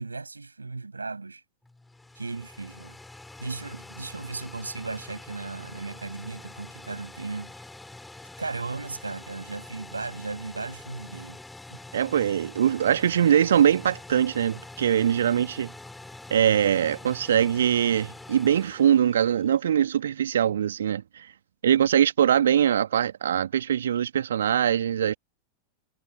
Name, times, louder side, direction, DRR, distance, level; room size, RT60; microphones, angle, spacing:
voice 1, 0.0-1.4 2.1-3.0 3.4-7.6 8.4-11.4 11.7-11.8, right 3 dB, 80° right, 6.7 m, -36 dB
sound 1, 1.6-19.8, left 2 dB, 5° left, 5.5 m, -45 dB
voice 2, 11.9-15.7 16.3-21.3 21.6-25.1, right 9 dB, 65° right, 2.1 m, -22 dB
figure-of-eight pair, 90°, 0 cm